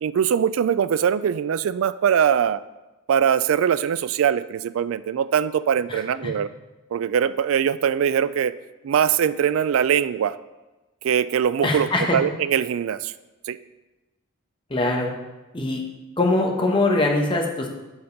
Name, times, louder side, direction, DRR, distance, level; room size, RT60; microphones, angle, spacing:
voice 1, 0.0-2.6 3.1-6.5 6.9-8.5 8.8-10.4 11.0-13.1 13.5-13.6, right 8 dB, 70° right, 15 dB, 0.3 m, -22 dB
voice 2, 5.9-6.3 11.6-12.2 14.7-15.1 15.5-15.8 16.2-17.7, left 2 dB, 25° left, 0 dB, 1.1 m, -22 dB
7.1 x 5.1 x 5.3 m, 1.1 s
head